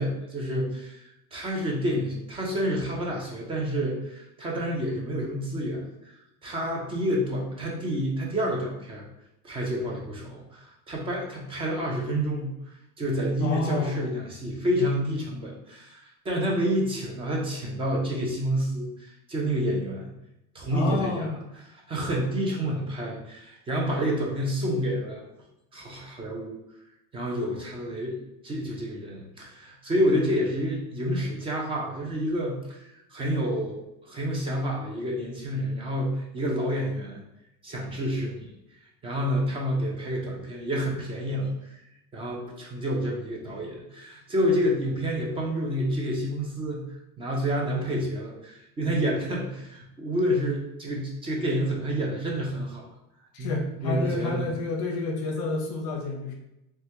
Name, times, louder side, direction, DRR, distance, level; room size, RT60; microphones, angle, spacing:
voice 1, 0.0-6.2 6.4-9.1 9.4-12.5 13.0-20.1 20.5-21.3 21.7-25.2 25.7-26.6 27.1-33.8 34.1-37.2 37.6-38.5 39.0-41.5 42.1-46.8 47.2-52.8 53.4-53.5 53.8-54.5, equal, 15° right, -1 dB, 0.3 m, -29 dB
voice 2, 13.4-14.2 20.7-21.4 53.3-56.3, left 3 dB, 55° left, 1 dB, 0.5 m, -30 dB
3.2 x 2.2 x 2.8 m, 0.88 s
cardioid pair, 165°, 37 cm